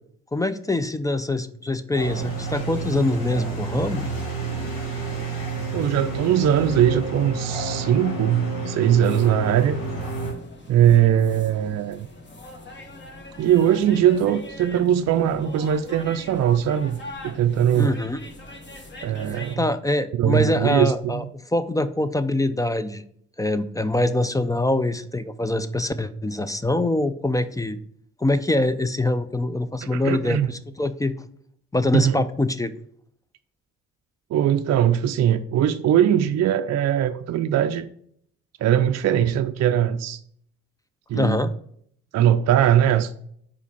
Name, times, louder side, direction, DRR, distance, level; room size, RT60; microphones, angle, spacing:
voice 1, 0.3-4.0 17.7-18.2 19.3-21.2 21.5-23.0 23.4-27.8 28.2-31.1 31.7-32.7 41.1-41.5, left 2 dB, 10° left, 0.5 m, -24 dB
sound 1, 1.9-10.3, right 3 dB, 75° left, 1.9 m, -29 dB
voice 2, 5.7-9.8 10.7-12.1 13.4-18.0 19.0-19.7 20.1-21.2 29.9-30.5 31.9-32.2 34.3-37.9 38.6-40.2 41.1-41.4 42.1-43.1, right 10 dB, 50° right, 0.5 m, -20 dB
sound 2, 9.0-19.6, left 1 dB, 30° left, 1.3 m, -42 dB
4.9 x 4.2 x 5.5 m
hypercardioid pair, 50°, 35 cm